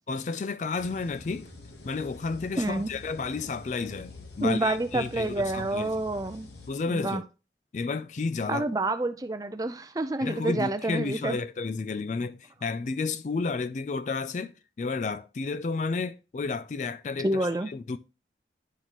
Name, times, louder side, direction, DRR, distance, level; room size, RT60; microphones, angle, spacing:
voice 1, 0.1-1.5 1.8-5.9 6.7-7.2 7.7-8.7 10.2-18.0, left 4 dB, 45° left, 0.3 m, -32 dB
sound 1, 0.8-6.7, left 2 dB, 75° left, 1.2 m, -46 dB
voice 2, 2.6-2.9 4.4-6.5 6.9-7.2 8.5-11.4 17.2-17.7, right 2 dB, 20° right, 0.5 m, -28 dB
10.0 x 4.1 x 3.0 m
head